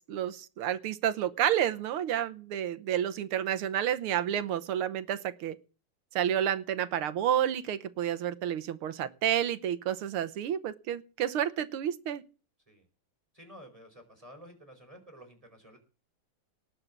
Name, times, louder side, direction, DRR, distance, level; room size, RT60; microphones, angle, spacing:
voice 1, 0.0-5.6 6.1-12.2, right 10 dB, 75° right, 12 dB, 1.9 m, -30 dB
voice 2, 13.3-15.8, equal, 15° right, 3 dB, 4.6 m, -51 dB
19.0 x 6.8 x 7.3 m, 0.36 s
omnidirectional pair, 2.4 m